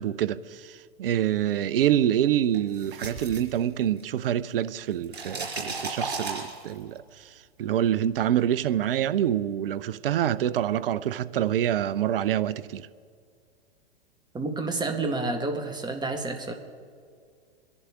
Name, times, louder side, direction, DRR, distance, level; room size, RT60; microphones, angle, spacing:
voice 1, 0.0-12.9, right 11 dB, 65° right, 0.6 m, -26 dB
sound 1, 2.5-4.2 4.5-7.0, right 3 dB, 85° right, 4.1 m, -35 dB
voice 2, 14.3-16.5, right 3 dB, 15° right, 1.8 m, -29 dB
24.0 x 11.0 x 3.7 m
hypercardioid pair, 105°, 31 cm